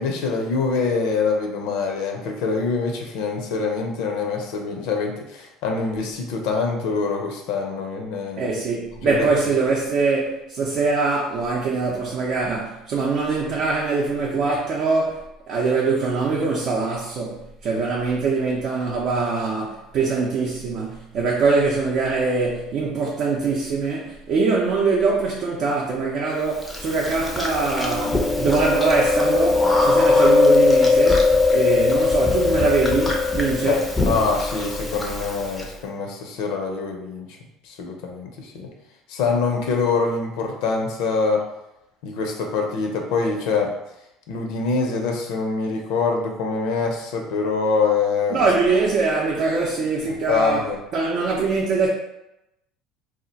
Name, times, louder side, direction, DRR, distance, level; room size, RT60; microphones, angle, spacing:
voice 1, 0.0-8.5 9.0-9.3 17.7-17.9 33.6-37.3 37.6-38.7 39.1-41.4 42.0-43.7 44.3-48.4 50.3-50.8, left 4 dB, 75° left, 0.5 m, -24 dB
voice 2, 8.4-33.9 48.3-51.9, right 4 dB, 55° right, 0.5 m, -23 dB
Chewing mastication, 26.7-35.6, left 3 dB, 10° left, 0.5 m, -20 dB
2.4 x 2.1 x 3.9 m
supercardioid pair, 115°, 0 cm